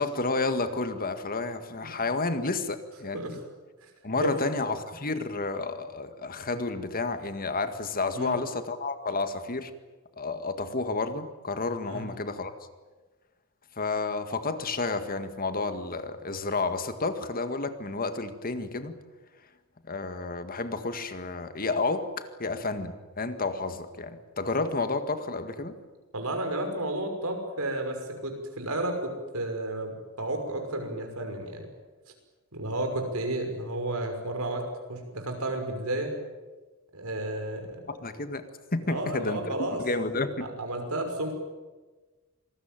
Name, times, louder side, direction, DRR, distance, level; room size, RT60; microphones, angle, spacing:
voice 1, 0.0-3.4 4.0-9.7 10.2-12.5 13.8-19.0 19.9-25.8 37.9-38.5 38.7-40.5, left 3 dB, 40° left, 9 dB, 1.9 m, -31 dB
voice 2, 4.2-4.5 8.1-8.4 11.9-12.1 26.1-31.7 32.5-36.1 36.9-37.8 38.9-39.8 40.6-41.3, right 1 dB, 85° right, 5 dB, 5.9 m, -32 dB
27.0 x 20.0 x 9.2 m, 1.3 s
head